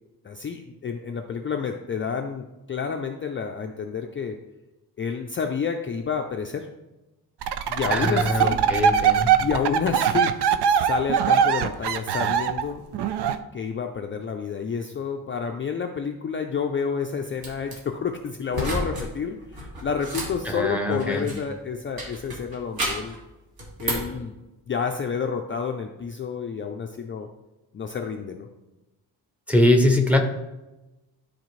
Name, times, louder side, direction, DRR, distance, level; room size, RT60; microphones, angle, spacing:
voice 1, 0.2-4.4 5.0-6.7 7.7-8.6 9.4-10.3 10.8-12.8 13.5-23.2 23.8-24.4 24.7-27.3 27.7-28.5, left 6 dB, 30° left, 3 dB, 0.4 m, -29 dB
sound 1, 7.4-13.4, right 8 dB, 80° right, 0.6 m, -21 dB
voice 2, 7.9-9.3 20.4-21.3 29.5-30.2, left 1 dB, 5° right, 3 dB, 0.7 m, -22 dB
sound 2, 17.4-17.7 18.5-19.1 19.4-21.5 22.0-23.2 23.6-24.2, right 1 dB, 65° right, 2.3 m, -31 dB
12.0 x 4.3 x 3.1 m, 1.0 s
wide cardioid pair, 175°, 40 cm